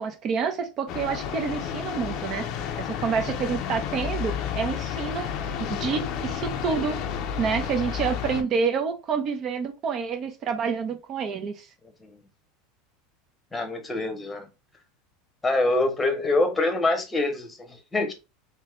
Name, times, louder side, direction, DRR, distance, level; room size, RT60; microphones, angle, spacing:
voice 1, 0.0-2.4 2.8-5.3 5.7-6.9 7.4-11.7, right 6 dB, 40° right, 1.0 m, -28 dB
sound 1, 0.9-8.4, left 8 dB, 50° left, 0.7 m, -31 dB
voice 2, 13.5-14.5 15.4-18.1, left 2 dB, 10° left, 1.0 m, -25 dB
3.6 x 2.8 x 3.2 m
supercardioid pair, 120°, 0 cm